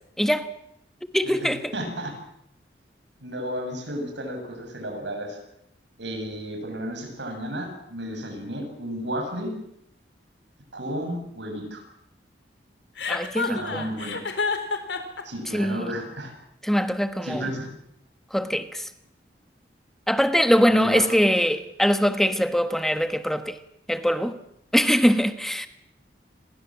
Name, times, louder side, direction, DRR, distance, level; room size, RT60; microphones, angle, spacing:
voice 1, 0.2-0.5 1.0-1.7 13.1-13.8 15.5-15.9 16.6-17.5 18.3-18.9 20.1-23.6 23.9-24.4 24.7-25.7, equal, ahead, 1.4 m, -22 dB
voice 2, 1.2-2.2 3.2-5.4 6.0-9.5 10.7-11.8 13.5-14.2 15.2-16.3 17.2-17.7 20.7-21.1, equal, 85° right, 7.3 m, -33 dB
Chuckle chortle, 13.0-15.2, left 4 dB, 90° left, 3.9 m, -28 dB
29.5 x 21.5 x 7.5 m
head